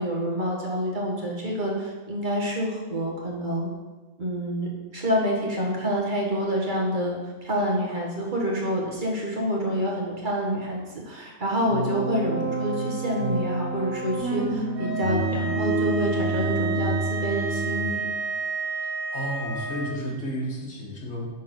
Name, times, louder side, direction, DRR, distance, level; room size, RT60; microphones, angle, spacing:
voice 1, 0.0-3.7 4.2-18.0, equal, 40° right, -2 dB, 1.4 m, -27 dB
sound 1, 11.6-17.9, right 2 dB, 60° right, 1.3 m, -28 dB
sound 2, 14.7-19.9, right 4 dB, 10° left, 2.0 m, -31 dB
voice 2, 19.1-21.3, equal, 75° left, -3 dB, 2.0 m, -32 dB
6.6 x 3.8 x 5.8 m, 1.2 s
omnidirectional pair, 1.3 m